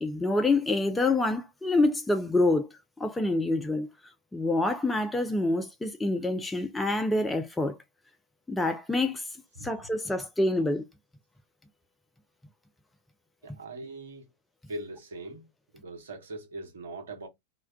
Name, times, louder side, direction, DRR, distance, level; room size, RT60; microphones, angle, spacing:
voice 1, 0.0-2.7 3.0-3.9 4.3-7.8 8.5-9.3 9.6-10.8, left 2 dB, 10° left, 0.4 m, -26 dB
voice 2, 13.4-14.3 14.7-15.5 15.7-17.3, right 2 dB, 65° right, 0.9 m, -41 dB
2.2 x 2.2 x 3.5 m
figure-of-eight pair, 90°, 0 cm